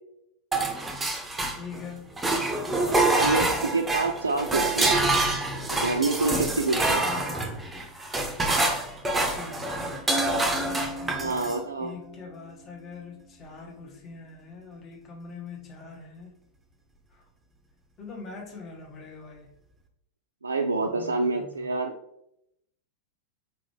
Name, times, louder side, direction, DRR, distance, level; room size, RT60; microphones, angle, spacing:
sound 1, 0.5-1.8 2.2-11.6, right 2 dB, 10° right, 0.7 m, -26 dB
voice 1, 1.6-2.1 7.0-7.5 9.3-9.9 11.0-11.5 11.8-16.3 17.1-17.2 18.0-19.5 20.8-21.8, left 4 dB, 30° left, 1 dB, 1.1 m, -43 dB
voice 2, 3.1-5.1 5.7-7.0 11.1-11.9 20.4-22.0, right 3 dB, 75° right, 3 dB, 0.4 m, -27 dB
4.4 x 3.7 x 3.2 m, 0.76 s
figure-of-eight pair, 90°, 0 cm